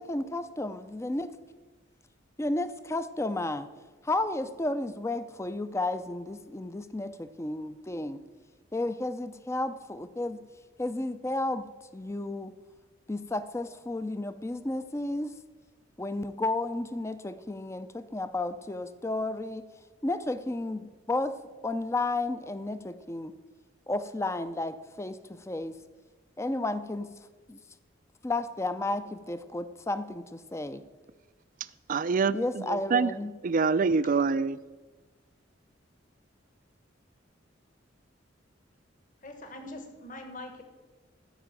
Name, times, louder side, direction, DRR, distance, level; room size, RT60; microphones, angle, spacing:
voice 1, 0.0-1.3 2.4-3.7 4.0-8.2 8.7-10.4 10.8-11.6 11.9-12.5 13.1-15.3 16.0-19.7 20.0-21.4 21.6-23.3 23.9-25.8 26.4-27.1 27.5-27.6 28.2-30.8 32.3-33.3, left 2 dB, 15° left, 12 dB, 0.5 m, -32 dB
voice 2, 31.9-33.1 33.4-34.6, right 4 dB, 45° right, 16 dB, 0.4 m, -25 dB
voice 3, 39.2-40.6, left 1 dB, 45° left, 6 dB, 1.4 m, -43 dB
14.0 x 5.0 x 8.8 m, 1.3 s
head